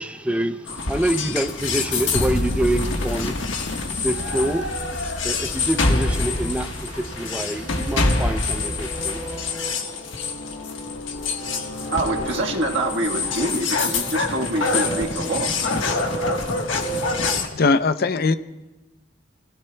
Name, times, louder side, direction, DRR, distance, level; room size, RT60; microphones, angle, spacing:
voice 1, 0.0-9.9, right 1 dB, 5° right, 7 dB, 0.5 m, -27 dB
sound 1, 0.7-17.5, left 3 dB, 90° left, 1.4 m, -26 dB
sound 2, 1.6-9.5, right 1 dB, 40° right, 1.3 m, -38 dB
sound 3, 4.4-17.4, right 3 dB, 20° left, 2.3 m, -36 dB
voice 2, 11.9-15.5, right 2 dB, 75° right, 1 dB, 1.5 m, -25 dB
voice 3, 17.5-18.4, left 3 dB, 55° left, 12 dB, 0.6 m, -19 dB
30.0 x 16.0 x 2.3 m, 1.1 s
head